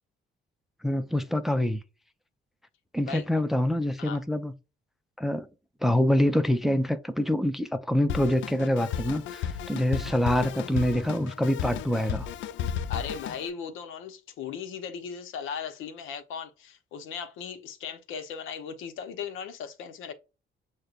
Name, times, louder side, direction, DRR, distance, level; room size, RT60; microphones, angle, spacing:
voice 1, 0.8-1.8 2.9-4.5 5.2-5.5 5.8-12.3, left 1 dB, ahead, 0.4 m, -25 dB
Drum kit, 8.1-13.5, left 8 dB, 70° left, 0.4 m, -34 dB
voice 2, 12.9-20.1, left 7 dB, 85° left, 0.8 m, -37 dB
6.4 x 2.2 x 2.4 m
cardioid pair, 90°, 20 cm